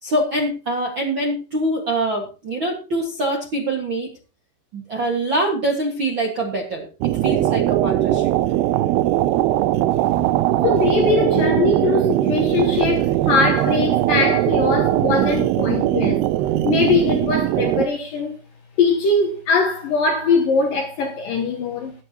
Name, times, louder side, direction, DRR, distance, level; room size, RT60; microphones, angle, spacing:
voice 1, 0.0-4.1 4.7-6.9 7.2-8.3 10.1-10.2, right 1 dB, 50° right, 1.5 m, -24 dB
sound 1, 7.0-17.9, right 14 dB, 80° right, 2.4 m, -20 dB
voice 2, 10.6-16.2 16.6-18.4 18.8-21.9, left 4 dB, 65° left, 2.4 m, -21 dB
19.0 x 9.9 x 3.0 m
omnidirectional pair, 5.3 m